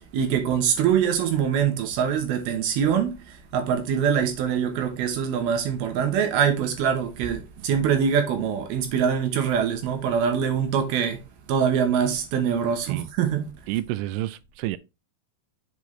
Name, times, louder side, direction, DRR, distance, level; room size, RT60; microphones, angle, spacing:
voice 1, 0.1-11.2 11.5-13.5, right 8 dB, 70° right, 2.5 m, -24 dB
voice 2, 13.7-14.8, right 15 dB, 90° right, 3.0 m, -29 dB
7.6 x 5.0 x 3.1 m
omnidirectional pair, 5.3 m